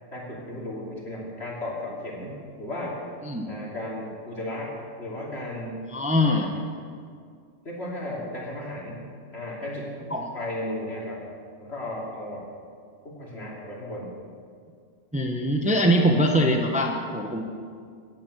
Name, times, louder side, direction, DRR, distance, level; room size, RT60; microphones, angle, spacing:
voice 1, 0.0-3.0 3.5-5.8 6.2-6.6 7.6-9.0 9.3-9.9 10.3-11.2 11.6-12.5 13.0-14.1, left 1 dB, 55° left, -4 dB, 3.2 m, -35 dB
voice 2, 5.9-6.5 10.1-10.3 15.1-17.4, equal, 5° right, 2 dB, 0.8 m, -22 dB
17.0 x 7.5 x 7.9 m, 2.2 s
omnidirectional pair, 1.3 m